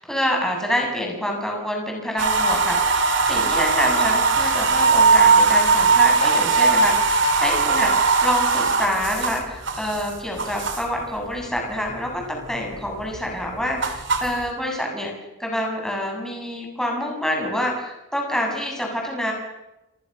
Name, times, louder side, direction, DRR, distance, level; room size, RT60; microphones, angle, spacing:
voice 1, 0.0-15.1 15.4-19.3, equal, ahead, 0 dB, 7.7 m, -27 dB
sound 1, 2.2-11.0 11.4-12.1 12.4-14.5, right 4 dB, 55° right, 3.6 m, -19 dB
28.0 x 28.0 x 6.9 m, 0.95 s
head